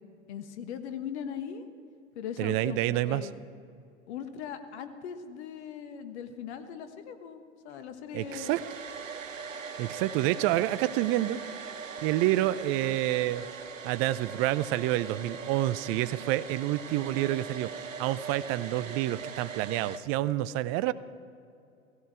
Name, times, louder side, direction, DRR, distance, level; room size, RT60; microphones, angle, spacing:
voice 1, 0.3-1.7 2.1-3.3 4.1-8.5, left 8 dB, 60° left, 9 dB, 1.4 m, -39 dB
voice 2, 2.4-3.3 8.1-8.6 9.8-11.4 12.0-13.5 13.8-20.9, right 15 dB, 35° right, 17 dB, 0.6 m, -28 dB
Domestic sounds home sounds, 8.2-20.0, right 6 dB, 90° right, 0.8 m, -41 dB
16.5 x 15.5 x 4.8 m, 2.5 s
figure-of-eight pair, 95°, 38 cm